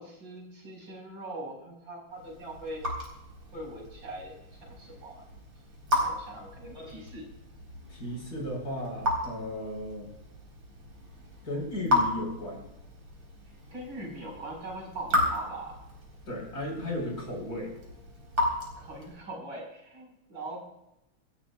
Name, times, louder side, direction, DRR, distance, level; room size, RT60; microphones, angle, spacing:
voice 1, 0.0-2.8 3.5-5.2 6.0-7.3 13.7-15.8 18.8-20.6, right 2 dB, 55° right, 0 dB, 5.3 m, -41 dB
Raindrop / Drip, 2.1-19.3, left 1 dB, 85° right, 4.9 m, -34 dB
voice 2, 7.9-10.1 11.4-12.7 16.3-17.7, left 1 dB, 40° left, 0 dB, 4.9 m, -35 dB
27.0 x 13.0 x 2.3 m, 0.87 s
omnidirectional pair, 2.4 m